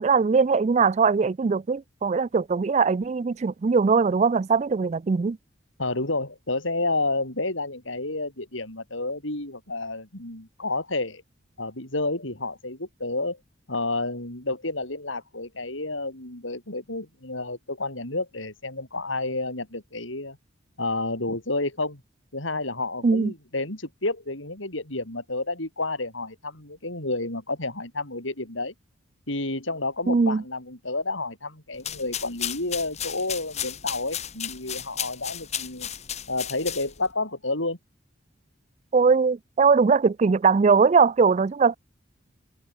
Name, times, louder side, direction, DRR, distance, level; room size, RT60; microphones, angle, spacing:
voice 1, 0.0-5.4 23.0-23.3 30.1-30.4 38.9-41.8, right 5 dB, 35° right, 0.3 m, -21 dB
voice 2, 5.8-11.2 11.6-13.4 13.7-20.4 20.8-22.0 22.3-28.7 29.3-35.9 36.3-37.8, left 2 dB, 85° left, 7.7 m, -30 dB
sound 1, 31.7-37.1, left 10 dB, 35° left, 1.4 m, -34 dB
head